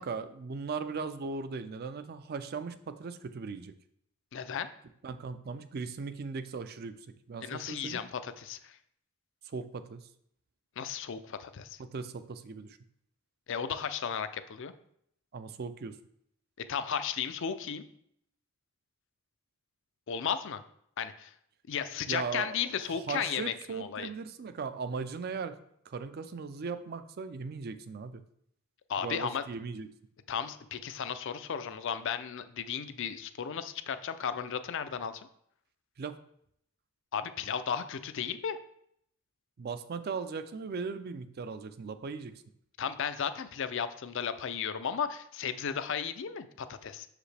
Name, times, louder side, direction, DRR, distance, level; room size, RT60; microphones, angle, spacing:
voice 1, 0.0-3.7 5.0-6.9 7.3-8.0 9.4-10.1 11.8-12.8 15.3-16.0 22.1-25.6 25.9-28.2 29.0-29.9 36.0-36.2 39.6-42.4, right 5 dB, 45° right, 11 dB, 0.4 m, -38 dB
voice 2, 4.3-4.7 7.4-8.7 10.8-11.8 13.5-14.7 16.7-17.8 20.1-20.6 21.0-21.3 21.7-24.1 28.9-29.4 30.3-35.2 37.1-38.6 42.8-47.1, left 7 dB, 60° left, 11 dB, 0.4 m, -34 dB
6.4 x 4.9 x 3.3 m, 0.71 s
head